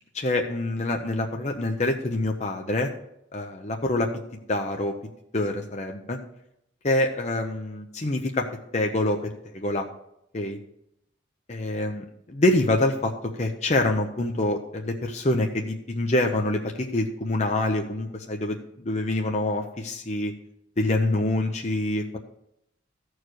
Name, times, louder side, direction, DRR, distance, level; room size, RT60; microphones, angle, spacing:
voice 1, 0.1-2.9 3.3-4.1 4.5-4.9 5.3-6.2 6.8-8.5 8.7-9.9 10.3-10.6 11.5-20.3 20.8-22.2, left 2 dB, 35° left, 3 dB, 0.7 m, -26 dB
14.0 x 4.7 x 6.3 m, 0.79 s
head